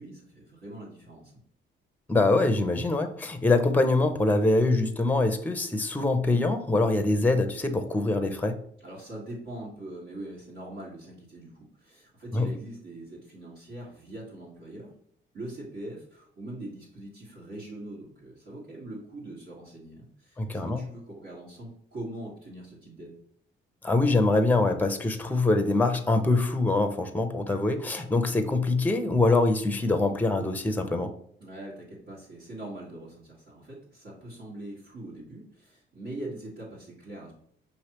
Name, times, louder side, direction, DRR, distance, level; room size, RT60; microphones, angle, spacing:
voice 1, 0.0-1.3 8.8-14.9 15.3-20.4 20.6-23.2 31.4-37.3, right 1 dB, 65° right, -8 dB, 1.8 m, -42 dB
voice 2, 2.1-8.6 12.3-12.5 20.4-20.8 23.8-31.1, left 2 dB, 10° left, 7 dB, 0.6 m, -24 dB
5.2 x 3.1 x 3.0 m, 0.67 s
cardioid pair, 90°, 20 cm